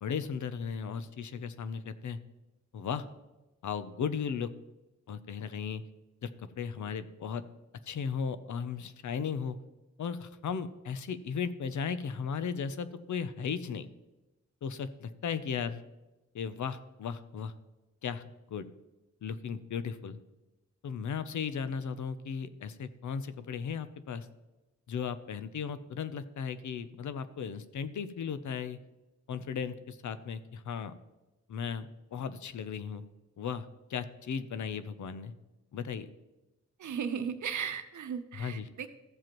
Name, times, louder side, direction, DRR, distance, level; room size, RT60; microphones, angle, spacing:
voice 1, 0.0-2.2 2.7-3.0 3.6-4.5 5.1-5.8 6.2-6.3 6.6-7.4 7.9-9.6 10.0-13.9 14.6-15.8 16.3-17.5 18.0-18.7 19.2-20.2 20.8-24.3 24.9-28.8 29.3-30.9 31.5-33.0 33.4-35.3 35.7-36.1 38.4-38.7, left 6 dB, 85° left, 13 dB, 0.6 m, -36 dB
voice 2, 36.8-38.9, right 7 dB, 80° right, 9 dB, 0.8 m, -36 dB
14.5 x 7.6 x 3.0 m, 1.1 s
wide cardioid pair, 160°, 29 cm